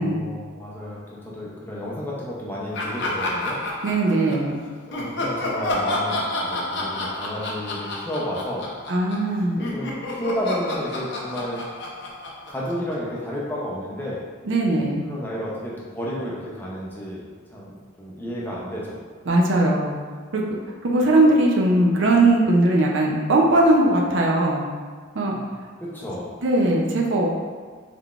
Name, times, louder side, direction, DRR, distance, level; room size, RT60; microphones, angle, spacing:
voice 1, 0.0-3.6 4.9-8.7 9.5-11.6 12.5-14.2 15.1-17.3 17.5-19.0 25.8-26.3, equal, 10° left, -6 dB, 0.5 m, -32 dB
Laughter, 2.7-4.5 4.9-9.3 9.6-13.2, left 2 dB, 55° left, 0.5 m, -29 dB
voice 2, 3.8-4.6 8.9-9.6 14.4-15.0 19.3-19.9 20.3-20.4 20.8-24.6 25.1-25.4 26.4-27.3, right 2 dB, 55° right, -1 dB, 0.5 m, -19 dB
3.7 x 3.3 x 2.4 m, 1.5 s
head